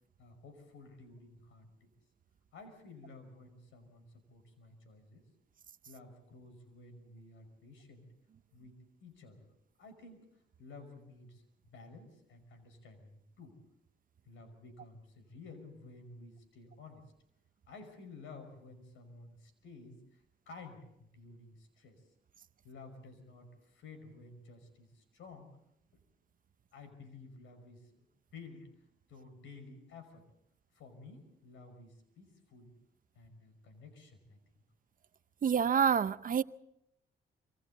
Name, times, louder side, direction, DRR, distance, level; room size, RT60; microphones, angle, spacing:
voice 1, 0.2-1.9 2.5-5.2 5.9-8.1 8.5-9.5 9.8-10.2 10.6-13.6 14.3-17.0 17.7-22.0 22.6-25.5 26.7-28.1 28.3-28.7 29.1-30.2 30.7-32.7 33.2-34.4, left 3 dB, 80° left, 5.5 m, -53 dB
voice 2, 35.4-36.4, right 7 dB, 45° right, 0.7 m, -27 dB
26.0 x 24.5 x 4.1 m
cardioid pair, 90°, 20 cm